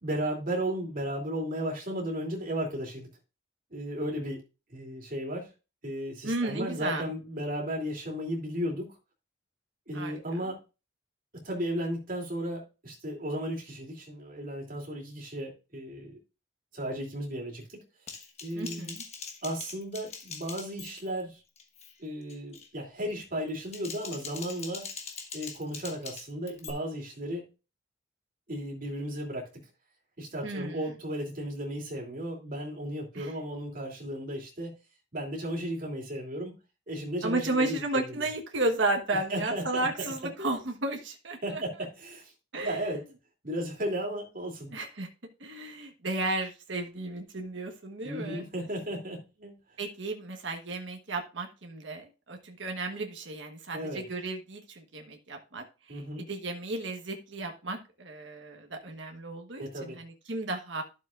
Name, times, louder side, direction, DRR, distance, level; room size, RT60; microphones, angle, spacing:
voice 1, 0.0-3.1 3.7-4.4 4.7-5.5 5.8-8.9 9.9-10.6 11.3-16.2 16.7-17.6 18.4-18.9 19.4-21.4 22.0-24.9 25.3-27.4 28.5-29.5 30.2-34.7 35.1-36.5 36.9-38.0 39.3-39.9 40.4-40.5 41.4-42.3 42.6-43.0 43.4-44.7 48.0-49.5 53.7-54.0 55.9-56.2 59.6-60.0, equal, 45° right, -1 dB, 2.9 m, -34 dB
voice 2, 6.2-7.1 9.9-10.2 18.5-19.0 30.4-30.9 33.1-33.3 37.2-41.6 42.5-42.8 44.7-45.1 45.4-48.4 49.8-60.8, right 2 dB, 65° right, 3 dB, 1.3 m, -33 dB
Typing, 18.1-21.2 21.6-21.9 22.3-22.7 23.5-26.7, left 5 dB, 35° left, 1.2 m, -43 dB
11.5 x 7.2 x 2.5 m, 0.30 s
head